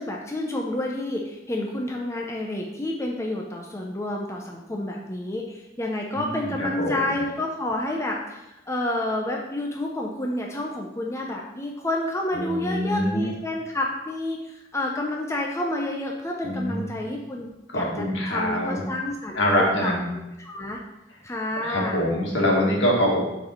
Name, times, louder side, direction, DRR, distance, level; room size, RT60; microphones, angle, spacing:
voice 1, 0.0-19.4 19.8-20.8 21.2-22.0, left 1 dB, 15° left, -1 dB, 0.6 m, -29 dB
voice 2, 6.1-7.0 12.3-13.3 16.4-16.9 17.7-18.8 19.3-20.1 21.6-23.2, equal, 75° left, -3 dB, 1.9 m, -24 dB
6.7 x 4.1 x 4.5 m, 0.92 s
head